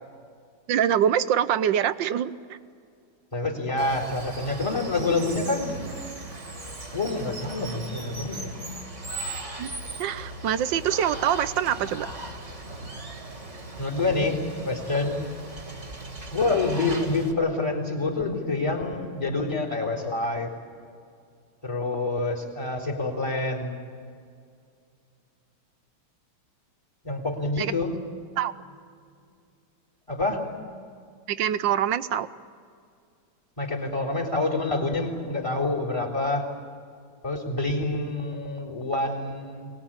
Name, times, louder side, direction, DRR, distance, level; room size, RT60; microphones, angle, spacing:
voice 1, 0.7-2.3 9.6-9.7 10.0-12.1 27.6-27.7 28.4-28.5 31.3-32.3, right 9 dB, 65° right, 14 dB, 1.3 m, -24 dB
voice 2, 3.3-5.8 6.9-8.5 13.8-15.2 16.3-20.5 21.6-23.8 27.0-28.0 30.1-30.4 33.6-36.5 37.2-39.7, left 2 dB, 15° left, 2 dB, 3.7 m, -27 dB
Water, 3.8-17.3, right 2 dB, 30° right, 2.6 m, -38 dB
24.5 x 20.5 x 8.8 m, 2.2 s
omnidirectional pair, 2.4 m